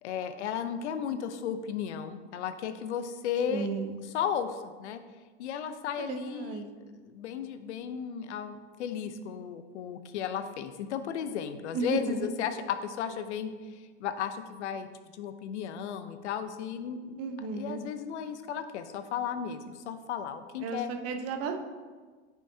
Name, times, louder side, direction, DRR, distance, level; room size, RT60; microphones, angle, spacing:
voice 1, 0.0-3.7 4.1-5.0 5.4-14.9 15.1-17.2 17.5-20.9, left 8 dB, 85° left, 10 dB, 0.7 m, -35 dB
voice 2, 3.5-4.0 6.0-6.7 11.7-12.3 17.2-17.8 20.6-21.7, right 4 dB, 45° right, 5 dB, 0.9 m, -33 dB
9.1 x 5.6 x 2.7 m, 1.4 s
hypercardioid pair, 100°, 34 cm